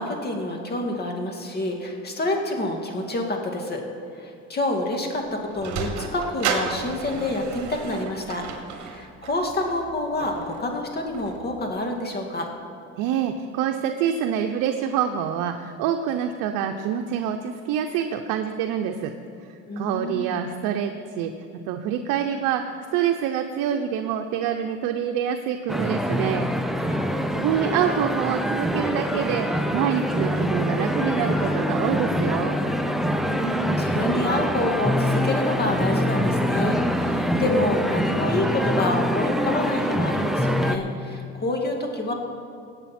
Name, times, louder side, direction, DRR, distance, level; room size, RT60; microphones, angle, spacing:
voice 1, 0.0-3.8 4.2-8.4 8.8-12.5 19.7-20.3 26.8-27.3 33.1-42.1, left 2 dB, 30° left, 2 dB, 2.1 m, -27 dB
Sliding door, 5.1-11.7, right 6 dB, 65° right, 1.6 m, -34 dB
voice 2, 13.0-19.1 19.5-21.3 21.7-22.6 22.9-26.5 27.3-32.6, right 9 dB, 80° right, 5 dB, 0.7 m, -26 dB
sound 1, 25.7-40.8, equal, ahead, 0.7 m, -24 dB
17.5 x 8.1 x 4.3 m, 2.7 s
cardioid pair, 105°, 31 cm